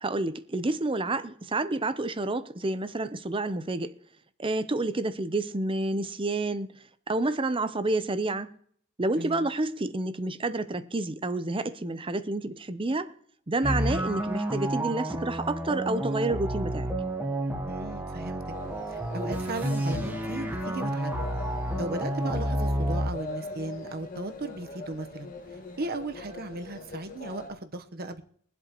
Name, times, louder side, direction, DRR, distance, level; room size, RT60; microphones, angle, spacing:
voice 1, 0.0-3.9 4.4-6.7 7.1-8.5 9.0-13.1 13.5-16.9, right 2 dB, 25° right, 0.7 m, -29 dB
voice 2, 9.2-9.5 17.6-18.4 18.9-21.1 21.8-25.3 25.8-28.2, right 2 dB, 50° right, 1.1 m, -36 dB
sound 1, 13.6-23.1, right 1 dB, 10° right, 1.4 m, -30 dB
sound 2, 18.5-27.5, left 2 dB, 40° left, 1.8 m, -42 dB
23.5 x 7.9 x 3.0 m
head